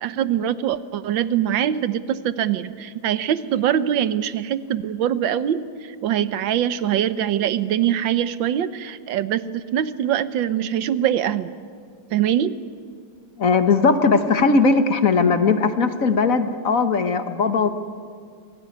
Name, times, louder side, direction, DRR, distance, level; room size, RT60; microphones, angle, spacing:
voice 1, 0.0-11.5 12.1-12.5, right 10 dB, 85° right, 14 dB, 1.6 m, -23 dB
voice 2, 13.4-17.7, left 4 dB, 50° left, 9 dB, 1.5 m, -18 dB
27.5 x 18.0 x 9.6 m, 2.2 s
omnidirectional pair, 2.0 m